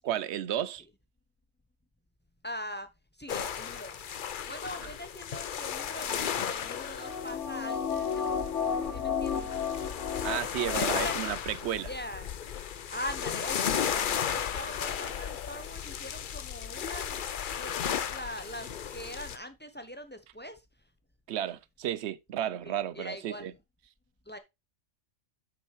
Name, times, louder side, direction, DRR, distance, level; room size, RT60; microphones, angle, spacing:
voice 1, 0.0-0.8 4.8-4.9 10.2-11.9 21.3-23.5, right 11 dB, 65° right, 0.8 m, -33 dB
voice 2, 2.4-2.9 3.2-4.1 4.5-8.6 8.9-9.5 10.6-11.2 11.9-12.3 12.9-17.2 17.5-20.6 22.6-23.5 24.3-24.4, equal, 10° left, 0.7 m, -42 dB
sound 1, 3.3-19.4, left 8 dB, 50° left, 0.7 m, -35 dB
sound 2, 6.6-11.3 11.7-11.8, left 6 dB, 80° left, 1.5 m, -33 dB
7.8 x 6.2 x 3.1 m
omnidirectional pair, 1.3 m